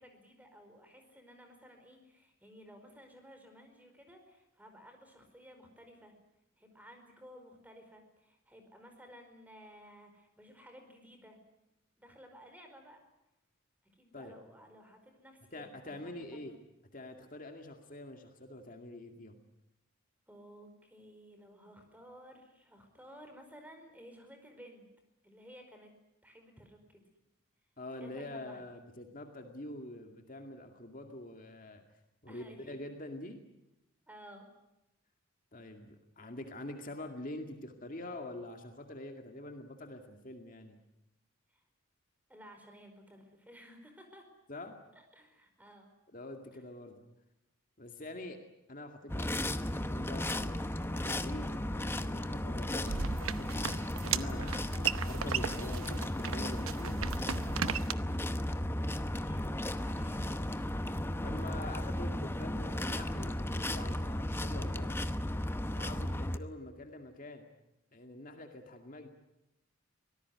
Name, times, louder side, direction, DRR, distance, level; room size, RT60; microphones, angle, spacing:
voice 1, 0.0-6.1 6.6-11.4 12.0-13.0 13.9-16.5 20.3-24.8 25.2-25.9 26.2-27.0 28.0-28.6 32.3-32.8 34.1-34.4 41.5-41.6 42.3-44.3 44.9-45.9 58.4-61.0 65.9-66.2, equal, 10° right, 5 dB, 4.8 m, -55 dB
voice 2, 15.5-16.6 16.9-19.4 27.8-31.8 32.2-33.4 35.5-40.8 44.5-44.8 46.1-47.0 47.8-48.4 48.7-57.1 61.2-64.9 65.7-67.5 67.9-69.1, left 1 dB, 40° left, 4 dB, 2.2 m, -45 dB
sound 1, 49.1-66.4, left 1 dB, 10° left, 0.8 m, -35 dB
sound 2, 52.9-57.9, right 7 dB, 80° right, 0.9 m, -36 dB
25.0 x 18.5 x 9.7 m, 0.93 s
head